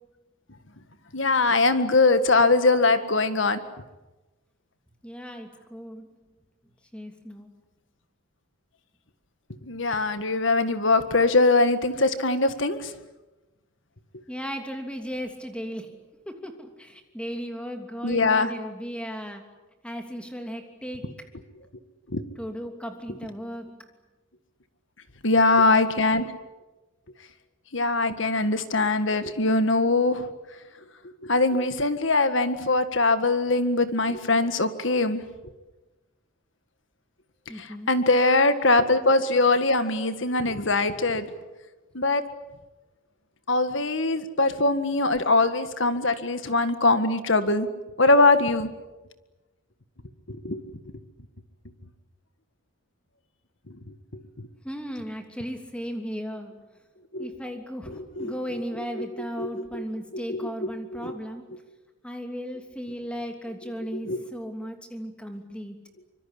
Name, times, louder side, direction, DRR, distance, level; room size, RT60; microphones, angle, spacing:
voice 1, 1.1-3.6 9.6-12.9 18.0-18.5 22.1-22.2 25.2-26.3 27.7-30.3 31.2-35.2 37.6-41.3 41.9-42.2 43.5-47.7 48.0-48.7 50.3-50.6 53.7-53.8 54.1-54.5 57.1-57.4 57.9-58.3 58.9-59.1 59.4-59.8 60.1-61.1 63.9-64.2, left 3 dB, 60° left, 10 dB, 1.8 m, -22 dB
voice 2, 5.0-6.1 6.9-7.6 14.3-16.0 16.3-19.4 19.8-21.1 22.4-23.7 37.5-37.9 54.6-56.7 57.2-61.4 62.0-65.9, equal, 5° left, 5 dB, 2.9 m, -36 dB
25.0 x 24.5 x 8.5 m, 1.1 s
head